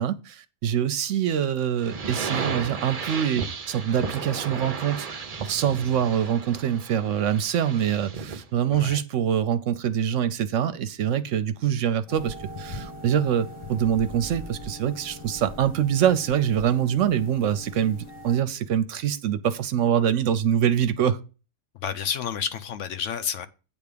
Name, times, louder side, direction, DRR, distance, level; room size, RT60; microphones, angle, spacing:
voice 1, 0.0-5.1 5.4-21.2, right 9 dB, 70° right, 0.9 m, -24 dB
sound 1, 1.8-8.5, right 5 dB, 45° right, 0.5 m, -34 dB
sound 2, 12.1-18.4, left 1 dB, 25° left, 0.7 m, -41 dB
voice 2, 21.7-23.5, left 8 dB, 65° left, 0.9 m, -30 dB
8.7 x 3.5 x 6.7 m
omnidirectional pair, 1.5 m